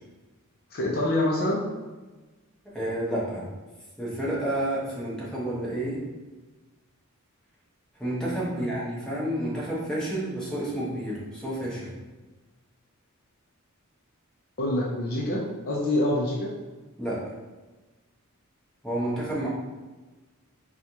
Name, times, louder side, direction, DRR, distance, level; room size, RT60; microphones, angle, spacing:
voice 1, 0.7-1.6 8.5-8.7 14.6-16.5, left 1 dB, 45° left, -3 dB, 0.5 m, -26 dB
voice 2, 2.7-3.5 4.0-6.0 8.0-12.0 17.0-17.2 18.8-19.5, right 1 dB, 5° left, -8 dB, 1.0 m, -30 dB
4.5 x 2.3 x 2.7 m, 1.2 s
head